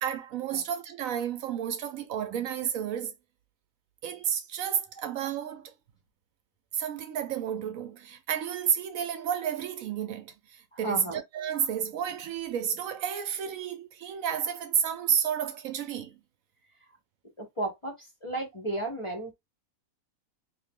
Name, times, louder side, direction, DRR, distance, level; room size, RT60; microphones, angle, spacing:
voice 1, 0.0-3.1 4.0-5.7 6.7-10.3 10.8-16.2, right 8 dB, 70° right, 1.0 m, -31 dB
voice 2, 10.7-11.2 17.4-17.9 18.2-19.3, right 2 dB, 25° left, 1.0 m, -33 dB
2.7 x 2.6 x 3.5 m
omnidirectional pair, 1.5 m